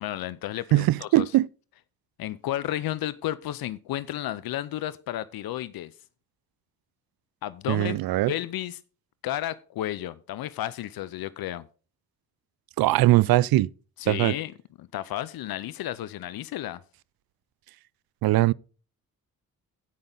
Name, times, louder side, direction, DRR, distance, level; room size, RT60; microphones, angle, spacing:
voice 1, 0.0-1.2 2.2-5.9 7.4-8.0 8.3-8.8 9.2-11.6 14.0-14.5 14.8-16.8, left 13 dB, 80° left, 0.6 m, -32 dB
voice 2, 0.7-1.5 7.7-8.3 12.8-13.7 14.1-14.4 18.2-18.5, right 16 dB, 80° right, 0.5 m, -21 dB
16.0 x 5.5 x 3.9 m
cardioid pair, 95°, 36 cm